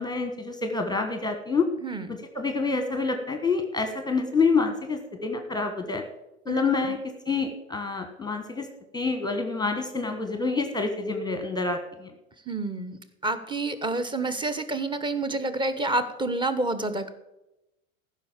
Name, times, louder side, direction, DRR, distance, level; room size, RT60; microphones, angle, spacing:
voice 1, 0.0-1.7 2.1-6.0 6.5-7.0 7.3-8.7 8.9-12.1, left 4 dB, 10° left, 6 dB, 1.3 m, -27 dB
voice 2, 12.5-13.0 13.2-17.1, right 2 dB, 10° right, 11 dB, 1.2 m, -28 dB
15.0 x 6.0 x 7.4 m, 0.92 s
figure-of-eight pair, 85°, 42 cm